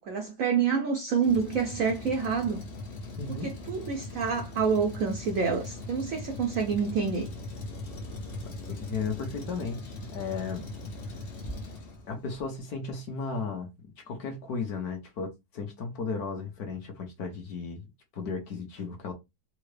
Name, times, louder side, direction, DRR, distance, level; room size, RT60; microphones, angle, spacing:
voice 1, 0.1-2.6 3.3-3.4 3.7-7.3, right 6 dB, 90° right, 0.7 m, -27 dB
Truck, 1.2-12.4, left 2 dB, 85° left, 0.5 m, -40 dB
voice 2, 3.2-3.5 8.7-10.7 12.1-17.9 18.1-19.1, left 5 dB, 60° left, 1.2 m, -35 dB
3.7 x 2.1 x 3.2 m
omnidirectional pair, 2.2 m